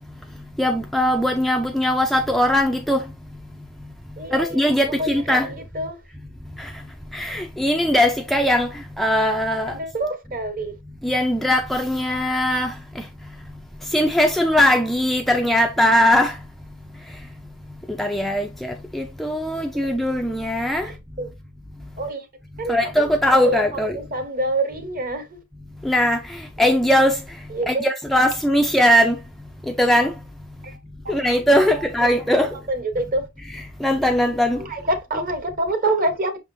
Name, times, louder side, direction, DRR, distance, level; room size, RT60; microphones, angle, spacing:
voice 1, 0.6-3.0 4.3-5.5 6.6-6.7 7.1-8.7 9.0-9.7 11.0-13.0 13.9-16.4 18.0-20.9 22.7-24.0 25.8-26.2 26.6-27.2 27.7-29.2 29.8-30.1 31.1-32.5 33.5-34.6, equal, ahead, 0.3 m, -20 dB
voice 2, 4.2-4.7 5.0-6.0 9.7-10.7 19.8-19.9 20.8-21.3 22.0-22.3 22.6-25.4 27.5-27.9 30.6-30.8 31.0-31.1 31.6-32.1 32.7-33.3 34.5-36.4, right 2 dB, 40° right, 0.9 m, -27 dB
5.7 x 3.6 x 2.5 m
head